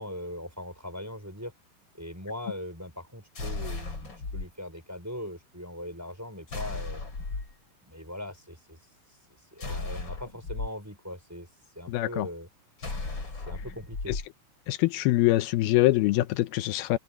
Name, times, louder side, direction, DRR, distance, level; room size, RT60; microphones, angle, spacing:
voice 1, 0.0-1.5 2.0-7.0 7.8-8.8 9.5-11.5 11.7-12.5 13.5-14.1, left 1 dB, 5° right, 5.0 m, -40 dB
sound 1, 3.4-4.5 6.5-7.5 9.6-10.7 12.8-14.3, left 3 dB, 30° left, 4.9 m, -35 dB
voice 2, 11.9-12.3 14.1-14.2 14.7-17.0, left 17 dB, 85° left, 2.6 m, -24 dB
omnidirectional pair, 4.3 m